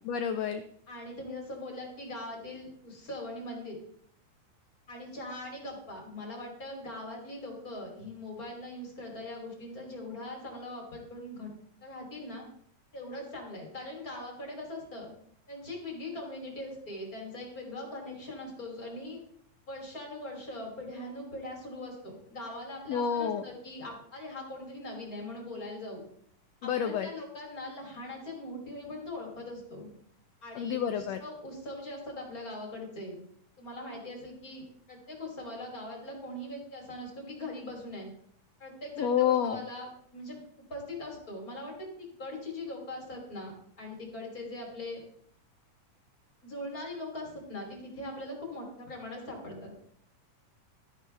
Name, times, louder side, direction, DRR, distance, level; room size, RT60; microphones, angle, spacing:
voice 1, 0.1-0.6 22.9-23.4 26.6-27.1 30.5-31.2 39.0-39.6, left 8 dB, 85° left, 8 dB, 1.4 m, -29 dB
voice 2, 0.9-3.8 4.9-11.5 11.8-12.4 12.9-15.1 15.5-19.2 19.7-26.0 26.6-29.9 30.4-33.2 33.6-38.1 38.6-40.4 40.7-45.0 46.4-49.7, left 1 dB, 25° left, 0 dB, 3.5 m, -41 dB
13.0 x 10.5 x 3.4 m, 0.66 s
omnidirectional pair, 3.7 m